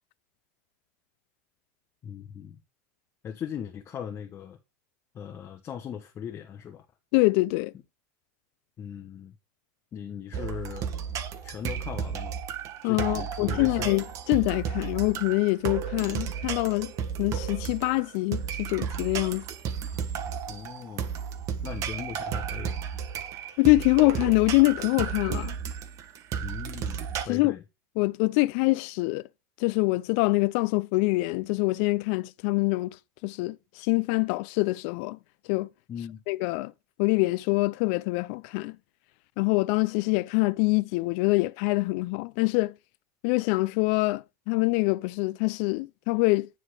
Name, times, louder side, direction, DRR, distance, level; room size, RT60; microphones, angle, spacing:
voice 1, 2.0-2.6 3.2-4.6 5.1-6.8 8.8-9.4 9.9-10.9 11.4-12.4 12.8-13.9 20.5-21.1 21.6-22.8 26.4-27.6 35.9-36.2, left 8 dB, 30° left, 1.2 m, -39 dB
voice 2, 7.1-7.7 12.8-16.9 17.2-19.4 23.6-25.5 27.3-27.5 28.0-29.2 29.6-32.9 33.2-35.2 35.5-35.7 36.3-36.7 37.0-38.8 39.4-42.7 43.2-46.5, left 24 dB, 60° left, 0.5 m, -25 dB
sound 1, 10.3-27.2, right 7 dB, 40° right, 1.5 m, -33 dB
10.0 x 3.9 x 4.8 m
supercardioid pair, 130°, 8 cm